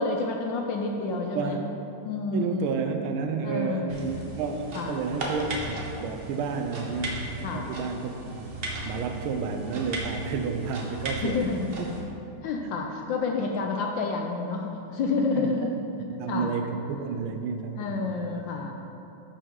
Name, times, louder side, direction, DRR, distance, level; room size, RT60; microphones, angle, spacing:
voice 1, 0.0-1.6 2.0-2.8 3.4-4.0 4.7-5.0 7.4-7.7 11.0-11.7 12.4-15.7 16.3-16.5 17.7-18.9, left 4 dB, 75° left, 2 dB, 1.1 m, -29 dB
voice 2, 1.0-1.7 2.3-11.4 12.6-12.7 15.3-15.6 16.1-18.4, right 5 dB, 75° right, 5 dB, 1.4 m, -31 dB
sound 1, 3.9-12.0, right 2 dB, 45° right, 0.7 m, -36 dB
10.5 x 5.4 x 3.7 m, 2.9 s
omnidirectional pair, 2.4 m